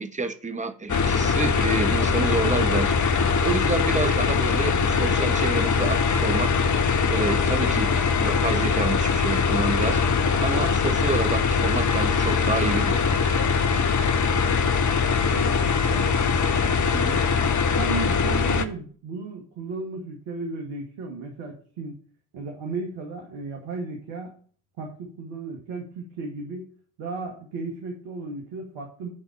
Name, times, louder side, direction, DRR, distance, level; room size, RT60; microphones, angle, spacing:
voice 1, 0.0-6.5 7.1-7.9 8.2-10.0 10.4-13.0 16.9-17.2, right 3 dB, 15° right, 1.3 m, -29 dB
sound 1, 0.9-18.7, left 5 dB, 40° left, 1.3 m, -22 dB
voice 2, 14.0-16.1 17.8-21.9 22.3-24.4 24.8-26.7 27.0-29.1, right 3 dB, 70° right, 2.3 m, -35 dB
11.0 x 4.3 x 7.0 m
hypercardioid pair, 55°, 46 cm